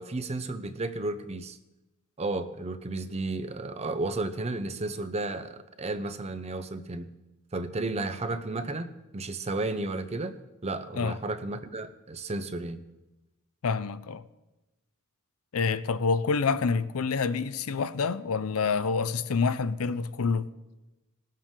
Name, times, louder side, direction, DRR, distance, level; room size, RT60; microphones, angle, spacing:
voice 1, 0.0-1.6 2.2-7.1 7.5-10.4 10.6-12.8, right 2 dB, 30° right, 0.6 m, -33 dB
voice 2, 13.6-14.2 15.5-20.5, left 5 dB, 70° left, 0.5 m, -27 dB
19.0 x 7.5 x 3.7 m
head